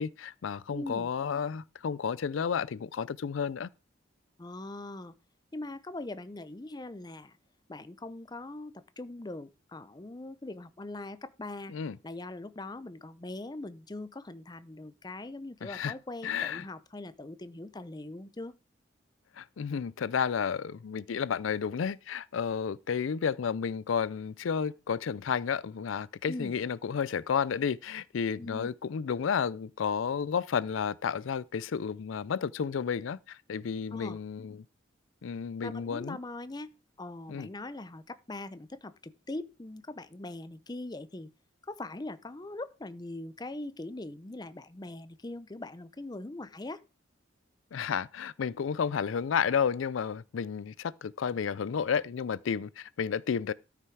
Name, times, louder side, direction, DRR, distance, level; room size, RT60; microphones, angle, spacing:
voice 1, 0.0-3.7 11.7-12.0 15.6-15.9 16.2-16.6 19.4-34.6 35.2-36.2 37.3-37.5 47.7-53.5, left 6 dB, 90° left, 0.4 m, -32 dB
voice 2, 0.7-1.1 4.4-5.1 5.5-7.4 7.7-11.7 12.0-18.5 26.3-26.5 28.4-28.7 33.9-34.2 35.6-36.7 37.0-41.3 41.7-46.8, left 2 dB, 20° left, 0.6 m, -41 dB
13.0 x 5.8 x 4.6 m
head